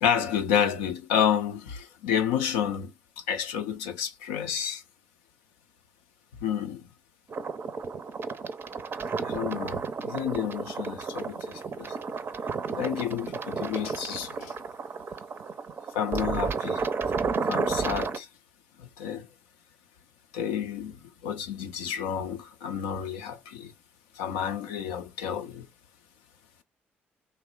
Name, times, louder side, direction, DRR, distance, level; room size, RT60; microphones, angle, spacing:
voice 1, 0.0-4.8 6.4-6.9 9.2-12.0 12.7-14.6 15.9-16.9 17.3-18.3 18.8-19.3 20.3-23.7 24.1-25.7, left 8 dB, 75° left, 0.3 m, -30 dB
sound 1, 7.3-18.2, right 5 dB, 40° right, 0.5 m, -32 dB
3.0 x 2.0 x 2.3 m
figure-of-eight pair, 45°, 6 cm